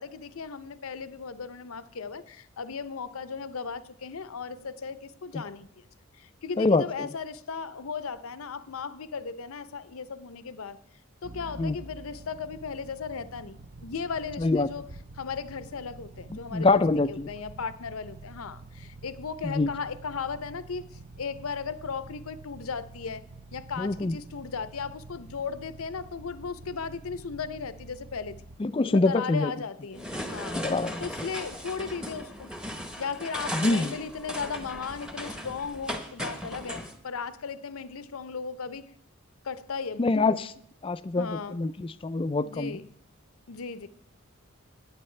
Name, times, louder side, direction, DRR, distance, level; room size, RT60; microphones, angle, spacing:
voice 1, 0.0-5.9 6.1-10.8 11.2-14.8 15.2-16.8 17.1-28.4 28.8-30.6 31.0-32.5 33.0-38.9 39.4-40.3 41.2-41.6 42.4-42.9 43.5-43.9, left 5 dB, 80° left, 0.6 m, -36 dB
voice 2, 6.6-7.1 11.6-11.8 14.4-14.7 16.3-17.3 19.4-19.7 23.8-24.2 28.6-29.5 30.6-31.0 33.5-33.9 40.0-40.5 40.8-42.8, left 3 dB, 25° left, 0.3 m, -25 dB
sound 1, 11.2-28.6, right 3 dB, 40° right, 0.6 m, -47 dB
sound 2, 29.9-36.9, equal, 5° right, 0.9 m, -37 dB
16.0 x 9.6 x 3.3 m
head